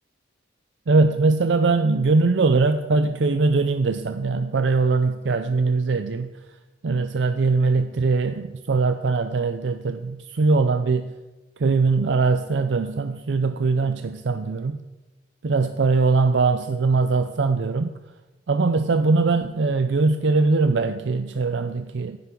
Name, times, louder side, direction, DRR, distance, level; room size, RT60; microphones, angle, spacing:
voice 1, 0.9-6.3 6.8-11.1 11.6-14.8 15.4-17.9 18.5-22.2, right 3 dB, 85° right, 9 dB, 0.5 m, -21 dB
15.5 x 10.5 x 3.8 m, 1.1 s
head